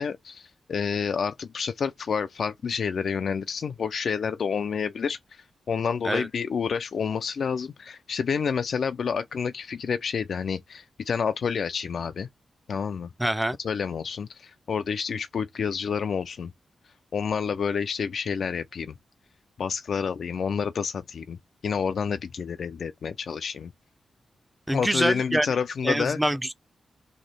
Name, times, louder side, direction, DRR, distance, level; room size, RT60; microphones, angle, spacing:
voice 1, 0.0-12.3 12.7-13.1 13.6-16.5 17.1-19.0 19.6-23.7 24.7-26.2, left 6 dB, 70° left, 0.4 m, -29 dB
voice 2, 13.2-13.6 24.7-25.5 25.8-26.5, right 1 dB, 10° right, 0.5 m, -25 dB
3.1 x 2.7 x 3.9 m
cardioid pair, 70°, 0 cm